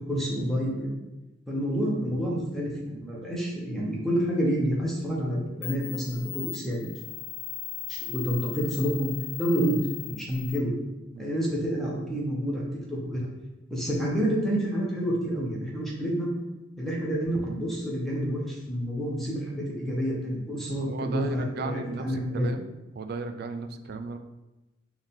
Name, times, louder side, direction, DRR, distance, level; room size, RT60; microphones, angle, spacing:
voice 1, 0.1-0.9 1.5-6.9 7.9-9.1 9.4-9.8 10.0-10.7 11.2-12.6 12.9-13.3 13.7-16.3 16.8-22.5, equal, ahead, -4 dB, 1.0 m, -28 dB
sound 1, 5.2-5.3 5.6-10.6, left 13 dB, 70° left, 0.5 m, -38 dB
voice 2, 20.8-22.7 23.0-24.2, right 3 dB, 55° right, 7 dB, 0.4 m, -35 dB
4.8 x 2.7 x 3.6 m, 1.0 s
head